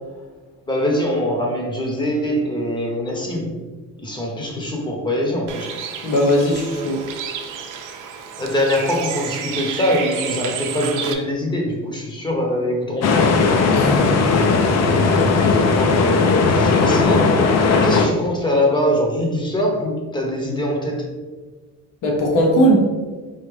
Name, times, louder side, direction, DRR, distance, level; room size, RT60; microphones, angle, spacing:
voice 1, 0.7-3.5 4.0-5.7 8.4-13.4 15.6-21.0, left 1 dB, 15° left, 0 dB, 0.8 m, -23 dB
Bird, 5.5-11.1, right 7 dB, 75° right, 0.6 m, -31 dB
voice 2, 6.0-7.0 13.7-14.3 22.0-22.9, equal, 90° left, -1 dB, 1.2 m, -18 dB
sound 1, 13.0-18.1, left 4 dB, 55° left, 0.5 m, -17 dB
4.7 x 2.9 x 3.2 m, 1.4 s
cardioid pair, 140°, 31 cm